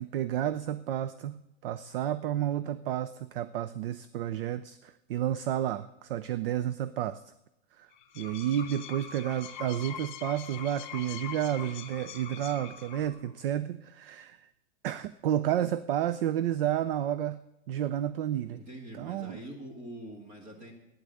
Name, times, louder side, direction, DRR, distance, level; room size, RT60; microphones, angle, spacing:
voice 1, 0.0-7.2 7.8-7.9 8.2-14.5 14.8-17.4 17.7-18.6 19.0-19.4, right 11 dB, 50° right, 16 dB, 0.4 m, -31 dB
sound 1, 7.9-13.3, left 8 dB, 40° left, 1.1 m, -43 dB
voice 2, 18.5-20.7, right 1 dB, 20° right, 2 dB, 2.2 m, -44 dB
11.5 x 9.7 x 7.7 m, 0.91 s
supercardioid pair, 180°, 37 cm